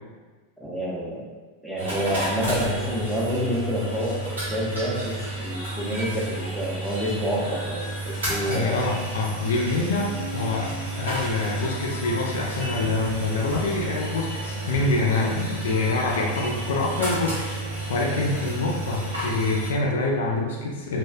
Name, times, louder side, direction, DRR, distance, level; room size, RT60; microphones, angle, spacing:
voice 1, 0.6-1.2 1.6-8.8, equal, ahead, -6 dB, 0.6 m, -28 dB
sound 1, 1.8-19.7, right 1 dB, 70° right, 0.9 m, -31 dB
voice 2, 8.5-21.0, left 3 dB, 60° left, -1 dB, 0.4 m, -26 dB
2.6 x 2.3 x 2.2 m, 1.4 s
figure-of-eight pair, 90°, 0 cm